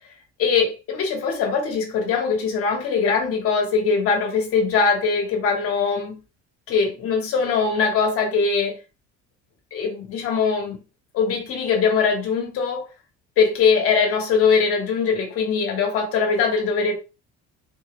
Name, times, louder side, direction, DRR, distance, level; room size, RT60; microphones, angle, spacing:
voice 1, 0.4-6.2 6.7-8.8 9.7-10.8 11.1-12.9 13.4-16.9, left 5 dB, 50° left, 1.6 m, -21 dB
4.5 x 2.8 x 3.1 m
cardioid pair, 170°, 30 cm